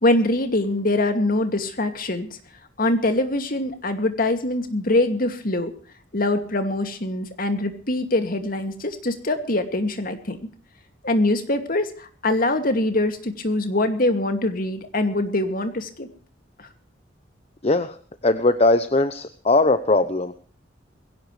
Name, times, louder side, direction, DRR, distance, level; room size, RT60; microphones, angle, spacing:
voice 1, 0.0-2.4 2.8-5.7 6.1-10.4 11.0-16.1 16.6-16.7, left 2 dB, 50° left, 7 dB, 2.5 m, -23 dB
voice 2, 17.6-18.0 18.2-20.5, left 2 dB, 35° left, 10 dB, 0.9 m, -20 dB
21.5 x 17.0 x 3.3 m, 0.43 s
head